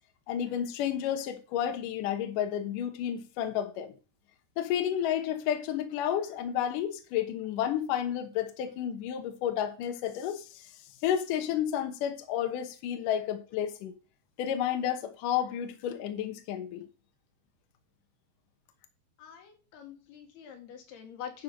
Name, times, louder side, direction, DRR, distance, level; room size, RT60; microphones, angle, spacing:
voice 1, 0.3-3.9 4.6-10.7 11.0-13.9 14.4-16.9, left 10 dB, 70° left, 2.4 m, -31 dB
voice 2, 19.2-21.4, left 9 dB, 85° left, 3.6 m, -44 dB
11.5 x 4.7 x 5.2 m
omnidirectional pair, 4.4 m